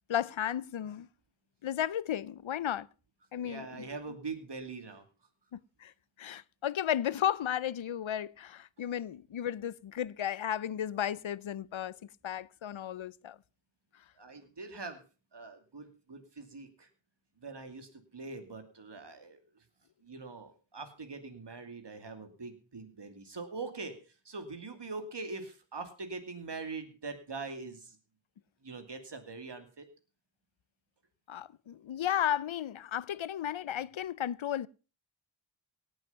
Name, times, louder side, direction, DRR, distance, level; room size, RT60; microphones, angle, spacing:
voice 1, 0.1-1.1 1.6-2.9 3.3-3.9 5.5-5.9 6.2-13.4 31.3-34.7, left 10 dB, 75° left, 0.7 m, -34 dB
voice 2, 3.3-5.0 14.2-15.0 15.3-16.9 17.4-19.4 20.0-23.9 24.3-28.0 28.6-29.8, right 3 dB, 60° right, 2.6 m, -43 dB
18.0 x 8.0 x 5.6 m
wide cardioid pair, 80°, 48 cm